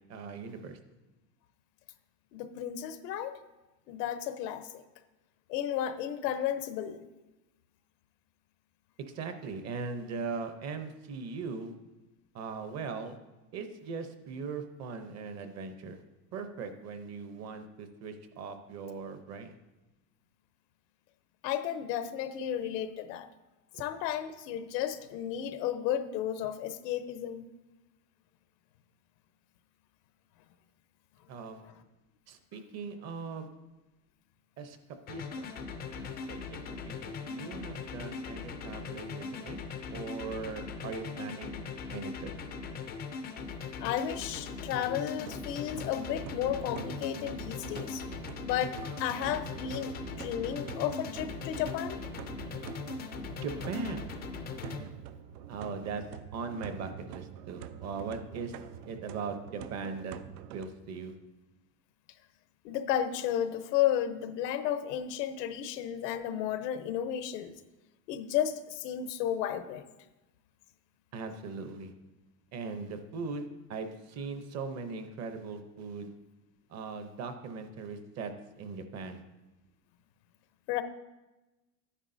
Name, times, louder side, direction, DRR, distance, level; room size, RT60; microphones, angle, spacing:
voice 1, 0.1-0.8 9.1-11.7 12.3-13.2 13.5-16.0 16.3-19.5 23.7-23.8 31.3-31.6 32.3-33.5 34.6-35.5 35.9-36.6 36.8-39.6 39.9-42.3 53.3-54.1 54.6-54.9 55.5-56.0 56.3-58.5 58.9-60.2 60.5-61.1 71.1-71.9 72.5-76.1 76.7-79.2, right 4 dB, 35° right, 8 dB, 0.7 m, -39 dB
voice 2, 2.3-3.4 3.9-4.8 5.5-7.1 21.4-23.3 23.8-27.5 43.8-48.0 48.4-52.0 62.6-67.5 68.1-69.8 80.7-80.8, left 10 dB, 85° left, 11 dB, 0.9 m, -33 dB
sound 1, 35.1-54.8, left 5 dB, 25° left, 0.3 m, -40 dB
sound 2, 44.7-60.7, right 9 dB, 85° right, 0.6 m, -46 dB
11.5 x 9.8 x 2.6 m, 1.1 s
supercardioid pair, 145°, 48 cm